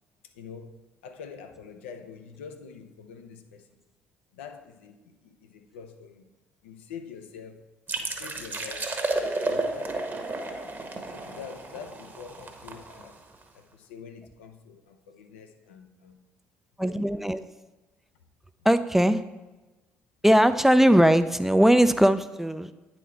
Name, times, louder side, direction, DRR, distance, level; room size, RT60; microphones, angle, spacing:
voice 1, 0.3-3.7 4.3-6.3 6.6-7.6 8.0-10.8 11.1-13.2 13.5-16.2 16.8-17.0, left 6 dB, 80° left, 6 dB, 0.6 m, -45 dB
sound 1, 7.9-13.4, right 2 dB, 30° right, 1.1 m, -32 dB
voice 2, 16.8-17.4 18.6-19.2 20.2-22.7, equal, 5° right, 12 dB, 0.4 m, -20 dB
9.0 x 4.2 x 4.3 m, 1.2 s
hypercardioid pair, 50°, 6 cm